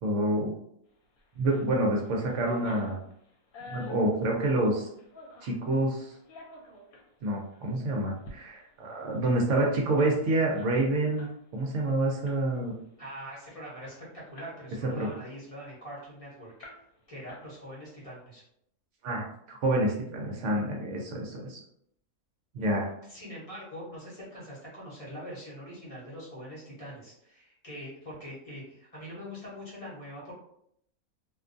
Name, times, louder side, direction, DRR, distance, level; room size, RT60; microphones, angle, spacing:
voice 1, 0.0-0.5 1.4-3.0 3.7-4.9 5.4-6.1 7.2-12.7 15.0-15.1 19.0-21.6 22.5-22.9, right 1 dB, 65° right, -1 dB, 0.8 m, -28 dB
sound 1, 1.2-1.7 2.0-5.6 6.1-7.1 7.5-7.7 8.1-8.4 8.7-8.8 9.0-11.4 11.7-11.9 12.2-12.7 13.1-13.2 13.5-14.6 15.0-16.1 16.6-17.0 17.3-17.9, left 2 dB, 75° left, 1.0 m, -48 dB
voice 2, 13.0-16.5 17.1-18.4 23.1-30.3, equal, 30° left, -7 dB, 0.7 m, -43 dB
2.5 x 2.2 x 2.5 m, 0.71 s
omnidirectional pair, 1.5 m